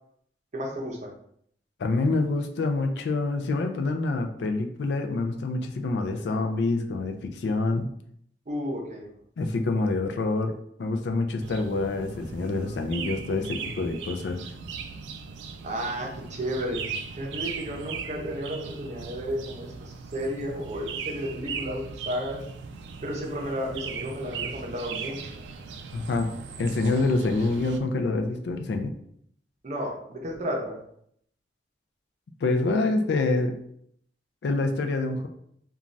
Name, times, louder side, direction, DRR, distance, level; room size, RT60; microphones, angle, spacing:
voice 1, 0.5-1.1 8.5-9.1 15.6-22.4 23.0-25.4 29.6-30.9, equal, 40° right, 0 dB, 0.6 m, -33 dB
voice 2, 1.8-7.9 9.4-14.4 25.9-26.3 26.6-29.0 32.4-33.5 34.4-35.3, left 3 dB, 65° left, 5 dB, 0.4 m, -26 dB
sound 1, 11.4-27.8, right 5 dB, 75° right, 0.3 m, -38 dB
3.1 x 2.3 x 2.5 m, 0.67 s
head